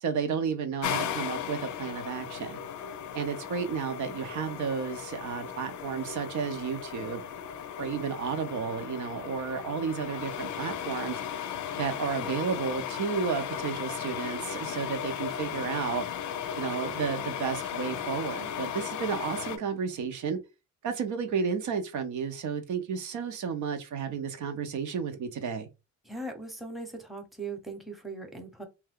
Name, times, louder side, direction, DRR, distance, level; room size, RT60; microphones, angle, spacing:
voice 1, 0.0-2.6 3.1-7.2 7.8-11.2 11.7-16.0 16.6-20.4 20.8-25.7, right 6 dB, 75° right, 0.7 m, -32 dB
sound 1, 0.8-19.6, left 9 dB, 70° left, 0.5 m, -36 dB
voice 2, 26.0-28.7, right 3 dB, ahead, 0.8 m, -39 dB
2.6 x 2.2 x 3.5 m
cardioid pair, 90°, 30 cm